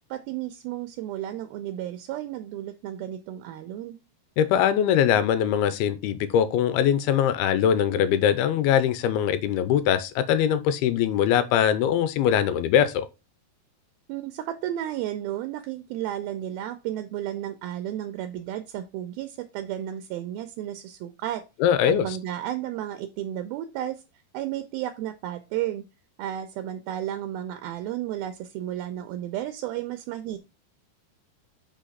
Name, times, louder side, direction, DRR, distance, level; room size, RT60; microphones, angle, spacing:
voice 1, 0.1-4.0 14.1-21.4 21.9-24.0 24.3-25.8 26.2-30.4, right 12 dB, 80° right, 2.4 m, -33 dB
voice 2, 4.4-13.1 21.6-22.1, left 9 dB, 90° left, 2.6 m, -22 dB
6.4 x 5.8 x 4.1 m
omnidirectional pair, 4.5 m